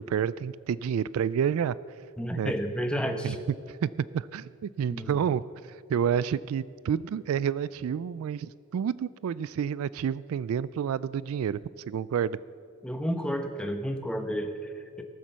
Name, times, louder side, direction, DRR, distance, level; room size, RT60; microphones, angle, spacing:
voice 1, 0.0-1.8 2.4-2.5 3.2-3.4 3.7-12.4, right 8 dB, 70° right, 18 dB, 0.3 m, -29 dB
voice 2, 2.2-3.4 4.9-5.2 12.8-15.0, equal, 5° left, 5 dB, 0.9 m, -31 dB
18.5 x 7.5 x 6.8 m, 2.4 s
head